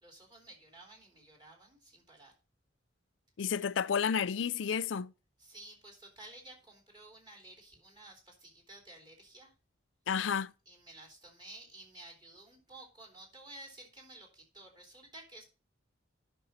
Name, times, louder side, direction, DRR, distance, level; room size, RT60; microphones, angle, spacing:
voice 1, 0.0-2.3 5.4-9.5 10.6-15.4, right 2 dB, 20° right, 3.3 m, -53 dB
voice 2, 3.4-5.1 10.1-10.5, left 7 dB, 70° left, 0.4 m, -31 dB
10.5 x 6.2 x 4.3 m
head